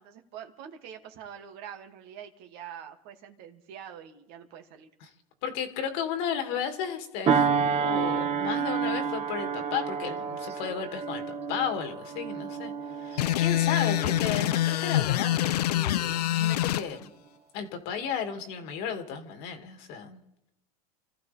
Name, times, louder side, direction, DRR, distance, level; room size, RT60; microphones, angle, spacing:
voice 1, 0.0-4.9, right 9 dB, 55° right, 4 dB, 2.3 m, -45 dB
voice 2, 5.4-11.2 11.5-17.1 17.5-20.2, left 7 dB, 60° left, 6 dB, 2.4 m, -34 dB
sound 1, 7.3-16.1 16.6-16.8, right 6 dB, 30° right, 1.5 m, -30 dB
sound 2, 13.2-16.8, left 13 dB, 80° left, 0.6 m, -25 dB
29.0 x 14.5 x 3.4 m, 0.85 s
hypercardioid pair, 100°, 20 cm